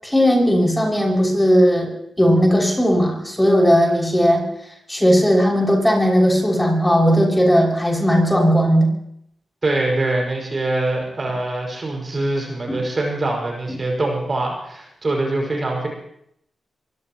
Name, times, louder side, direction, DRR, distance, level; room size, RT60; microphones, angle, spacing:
voice 1, 0.0-4.4 4.9-8.9 12.7-12.8 13.7-13.8, equal, 10° left, -1 dB, 6.5 m, -17 dB
voice 2, 9.6-15.9, right 2 dB, 40° right, 0 dB, 5.9 m, -23 dB
24.0 x 17.5 x 3.1 m, 0.74 s
cardioid pair, 60°, 0 cm